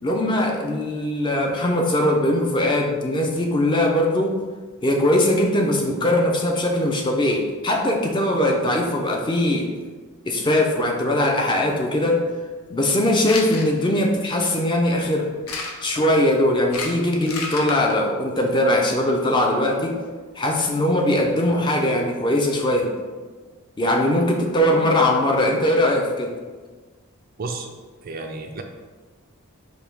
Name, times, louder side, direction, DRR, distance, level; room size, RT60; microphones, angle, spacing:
voice 1, 0.0-4.4 4.8-9.7 10.3-12.2 12.7-15.3 15.8-20.0 20.4-22.9 23.8-26.3, left 1 dB, 20° left, 1 dB, 0.5 m, -21 dB
sound 1, 13.3-13.7 15.5-15.9 16.6-17.9, left 4 dB, 80° left, 0.7 m, -30 dB
sound 2, 15.9-16.4 16.7-16.9 17.2-18.5 19.1-20.2 21.8-22.1 23.1-23.5 23.8-24.0 24.3-24.4 24.7-24.9 25.5-25.8, equal, 45° left, 0.8 m, -39 dB
voice 2, 27.4-27.7 28.0-28.6, right 3 dB, 40° right, 4 dB, 0.3 m, -32 dB
5.2 x 2.2 x 4.5 m, 1.4 s
head